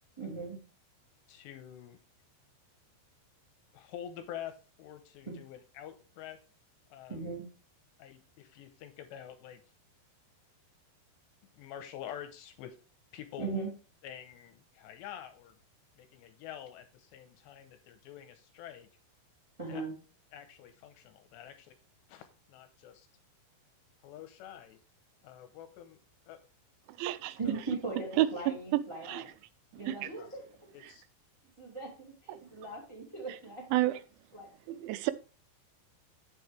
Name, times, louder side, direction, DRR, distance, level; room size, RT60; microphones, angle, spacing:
voice 1, 0.2-0.6 5.2-5.3 7.1-7.5 13.4-13.7 19.6-19.9 27.4-29.3 29.7-30.4 31.6-33.6 34.3-34.5, right 3 dB, 20° right, 0.7 m, -39 dB
voice 2, 1.3-2.0 3.7-6.4 6.9-7.2 8.0-9.6 11.5-12.8 13.1-13.6 14.0-15.6 16.0-18.9 19.7-19.8 20.3-21.7 22.1-23.1 24.0-24.8 25.2-26.0 26.3-26.4 27.4-27.6 30.2-30.3 30.7-31.0, left 10 dB, 80° left, 2.8 m, -47 dB
voice 3, 27.0-27.4 28.2-28.6 29.1-29.2 29.9-30.1 33.7-34.0 34.7-35.1, right 15 dB, 85° right, 3.0 m, -29 dB
8.4 x 6.8 x 3.3 m
omnidirectional pair, 5.4 m